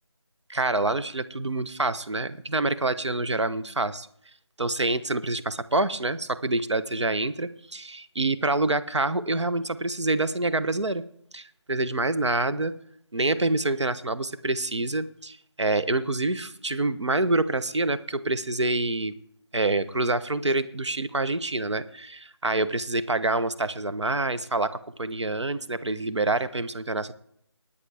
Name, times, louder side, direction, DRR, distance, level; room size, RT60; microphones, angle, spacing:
voice 1, 0.5-4.1 4.6-11.0 11.3-12.7 13.1-19.2 19.5-27.1, right 2 dB, 85° right, 13 dB, 1.0 m, -27 dB
20.0 x 10.0 x 3.4 m, 0.66 s
figure-of-eight pair, 170°, 14 cm